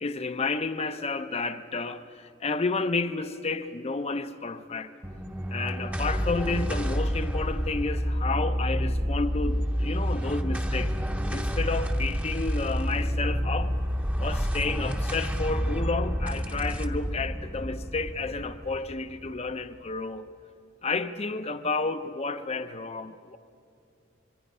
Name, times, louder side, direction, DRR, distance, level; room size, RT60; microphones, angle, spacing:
voice 1, 0.0-4.9 5.5-10.9 11.3-13.7 14.2-20.3 20.8-23.4, left 3 dB, 30° left, 0.6 m, -31 dB
sound 1, 5.0-19.6, equal, 10° right, 0.8 m, -29 dB
25.5 x 23.0 x 5.5 m
head